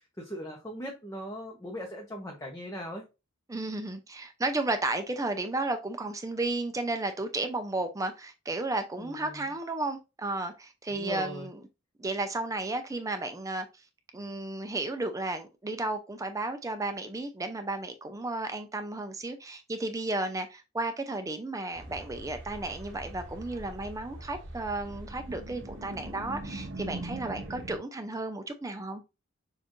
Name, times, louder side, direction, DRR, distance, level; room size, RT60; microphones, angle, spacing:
voice 1, 0.2-3.0 9.0-9.4 10.9-11.5, equal, 15° left, 0.8 m, -39 dB
voice 2, 3.5-11.6 12.0-13.7 14.1-29.0, right 2 dB, 15° right, 0.5 m, -33 dB
sound 1, 21.7-27.8, right 1 dB, 65° right, 1.3 m, -42 dB
6.4 x 2.5 x 3.0 m
head